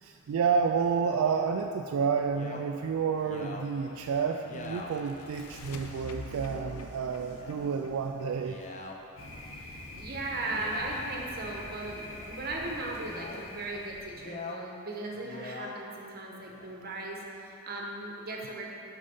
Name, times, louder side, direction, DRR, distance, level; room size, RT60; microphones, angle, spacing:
voice 1, 0.0-8.7, right 6 dB, 75° right, 4 dB, 0.3 m, -30 dB
Male speech man speaking, 1.2-1.7 2.3-2.6 3.2-3.7 4.4-4.9 5.7-5.9 6.4-6.8 7.2-7.8 8.3-9.0 10.3-11.3 11.9-12.4 13.0-13.5 14.1-14.6 15.1-15.7 16.4-17.0, left 3 dB, 35° left, 0.5 m, -44 dB
sound 1, 3.2-8.9, left 2 dB, 90° left, 0.6 m, -47 dB
Thunder, 9.2-14.4, left 1 dB, 60° left, 0.9 m, -44 dB
voice 2, 9.4-18.7, right 2 dB, 45° right, -1 dB, 1.0 m, -37 dB
6.5 x 5.4 x 5.4 m, 2.7 s
head